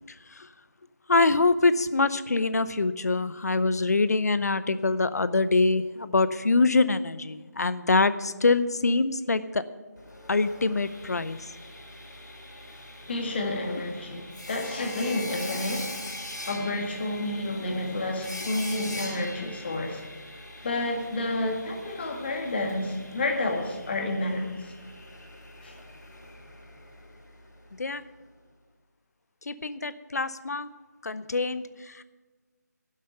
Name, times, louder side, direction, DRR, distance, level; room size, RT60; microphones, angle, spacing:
voice 1, 1.1-9.6 10.3-11.4 27.8-28.0 29.5-30.7 31.0-32.0, left 3 dB, 60° left, 14 dB, 0.7 m, -24 dB
Sawing, 10.0-27.8, left 1 dB, 80° left, 3.9 m, -42 dB
voice 2, 13.1-16.1 16.5-20.0 20.6-24.4 25.6-25.8, left 2 dB, 35° left, 2 dB, 1.9 m, -30 dB
11.0 x 7.5 x 9.0 m, 1.3 s
figure-of-eight pair, 165°, 10 cm